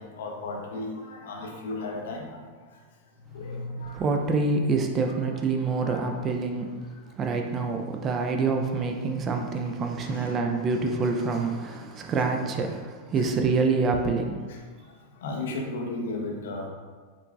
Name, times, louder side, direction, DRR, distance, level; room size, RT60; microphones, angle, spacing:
voice 1, 0.0-2.4 3.3-4.2 5.8-6.0 10.0-10.5 14.5-14.6 15.2-16.7, left 2 dB, 60° left, 1 dB, 0.5 m, -35 dB
voice 2, 3.9-6.8 7.2-14.4, right 4 dB, 25° right, 3 dB, 0.3 m, -26 dB
3.7 x 3.2 x 2.3 m, 1.5 s
figure-of-eight pair, 90°, 0 cm